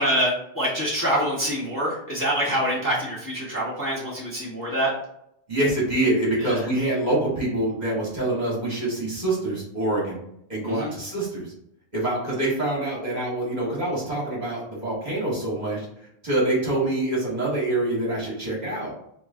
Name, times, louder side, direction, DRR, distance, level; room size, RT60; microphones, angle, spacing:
voice 1, 0.0-4.9 6.4-6.6 10.6-10.9, equal, 20° left, -7 dB, 0.9 m, -25 dB
voice 2, 5.5-10.2 10.5-11.5 11.9-15.9 16.2-18.9, right 1 dB, 40° right, -5 dB, 1.1 m, -25 dB
3.0 x 2.6 x 3.4 m, 0.75 s
omnidirectional pair, 1.2 m